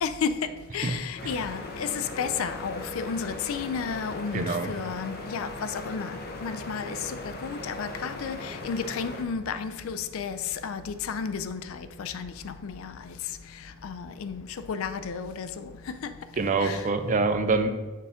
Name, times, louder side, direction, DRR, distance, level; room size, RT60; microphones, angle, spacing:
voice 1, 0.0-13.1 13.8-16.1 16.6-16.9, left 6 dB, 65° left, 0.4 m, -33 dB
sound 1, 1.2-9.2, left 2 dB, 45° left, 0.8 m, -39 dB
voice 2, 4.3-4.7 16.4-17.7, right 3 dB, 35° right, 0.5 m, -25 dB
6.5 x 3.6 x 5.5 m
head